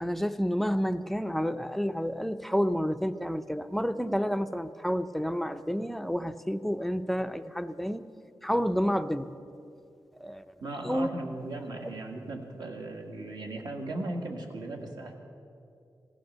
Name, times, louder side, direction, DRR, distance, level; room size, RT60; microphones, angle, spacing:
voice 1, 0.0-8.1 8.4-9.3 10.2-10.4 10.8-11.1 11.4-11.6, equal, ahead, 10 dB, 0.4 m, -29 dB
voice 2, 10.6-15.2, right 2 dB, 65° right, 2 dB, 1.8 m, -37 dB
16.5 x 13.5 x 6.6 m, 2.5 s
wide cardioid pair, 170°, 8 cm